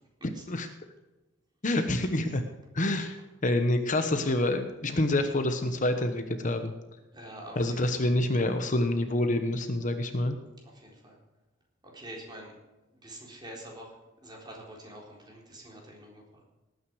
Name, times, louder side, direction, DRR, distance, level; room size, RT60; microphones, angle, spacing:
voice 1, 1.6-2.4 2.7-6.7 7.6-10.4, left 1 dB, 40° left, 7 dB, 1.1 m, -27 dB
voice 2, 7.1-8.1 10.6-11.2 11.9-12.5 13.0-13.9 14.2-16.4, right 1 dB, 20° right, -1 dB, 4.0 m, -46 dB
19.0 x 9.4 x 4.8 m, 1.1 s
head